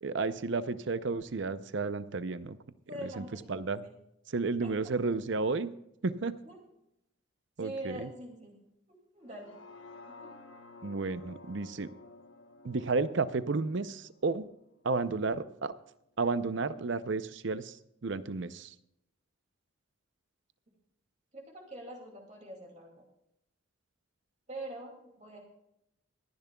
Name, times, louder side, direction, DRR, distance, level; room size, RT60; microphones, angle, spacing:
voice 1, 0.0-2.6 3.0-3.9 4.3-5.7 6.0-6.4 7.6-8.1 10.8-11.9 12.6-14.5 14.8-15.7 16.2-18.7, right 3 dB, 65° right, 14 dB, 0.6 m, -32 dB
voice 2, 2.9-3.9 4.6-4.7 6.4-6.6 7.6-8.6 8.9-9.5 10.1-10.3 21.3-23.0 24.5-25.4, right 1 dB, 35° right, 0 dB, 2.4 m, -44 dB
sound 1, 9.2-15.4 15.8-15.9, left 3 dB, 75° left, 1.1 m, -53 dB
25.0 x 10.5 x 2.3 m, 0.83 s
head